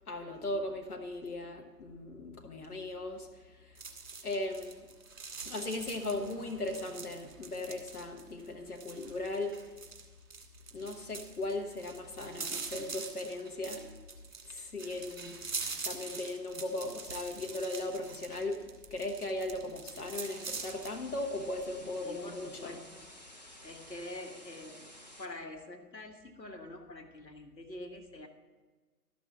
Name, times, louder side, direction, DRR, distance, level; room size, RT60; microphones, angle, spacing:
voice 1, 0.1-3.8 4.2-4.9 5.4-9.6 10.7-13.9 14.5-15.4 15.8-22.8, left 2 dB, 60° left, 3 dB, 1.3 m, -38 dB
sound 1, 3.8-20.9, right 4 dB, 50° right, 1.9 m, -44 dB
sound 2, 20.3-25.3, left 1 dB, 25° left, 0.7 m, -52 dB
voice 2, 22.0-23.1 23.6-28.3, left 1 dB, 85° left, 4 dB, 1.5 m, -46 dB
13.0 x 6.3 x 7.2 m, 1.3 s
figure-of-eight pair, 145°, 49 cm